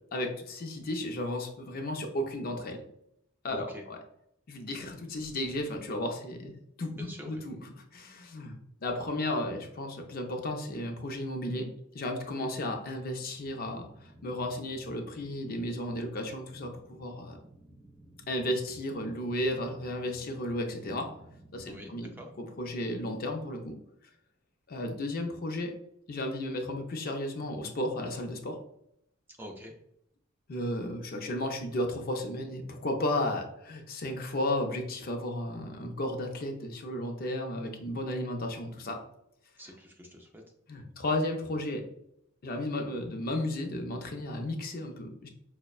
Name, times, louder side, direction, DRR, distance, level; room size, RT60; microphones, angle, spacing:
voice 1, 0.1-2.8 3.4-4.0 4.5-8.5 8.8-11.7 11.9-17.4 18.3-21.1 21.5-22.1 22.4-23.8 24.7-25.7 26.1-28.6 30.5-39.0 39.7-39.8 40.7-41.8 42.4-45.3, left 1 dB, 45° left, 3 dB, 0.5 m, -34 dB
voice 2, 3.5-3.8 7.0-7.4 21.6-22.3 29.4-29.7 39.6-40.4, left 1 dB, 10° right, 1 dB, 0.4 m, -45 dB
sound 1, 12.7-23.6, right 1 dB, 15° left, 1.3 m, -55 dB
5.2 x 2.1 x 2.3 m, 0.76 s
head